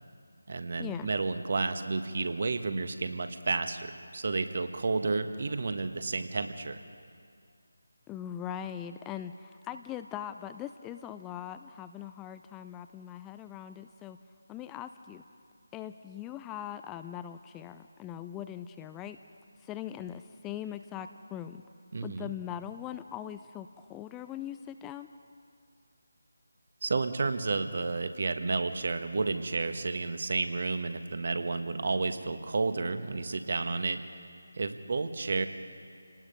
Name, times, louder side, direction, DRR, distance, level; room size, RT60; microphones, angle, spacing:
voice 1, 0.5-6.8 21.9-22.3 26.8-34.0 34.6-35.5, right 3 dB, 45° right, 9 dB, 1.4 m, -31 dB
voice 2, 8.1-14.2 14.5-15.2 15.7-19.2 19.6-21.6 22.0-25.1, left 10 dB, 10° left, 10 dB, 0.4 m, -41 dB
28.5 x 19.0 x 5.3 m, 2.2 s
figure-of-eight pair, 155°, 0 cm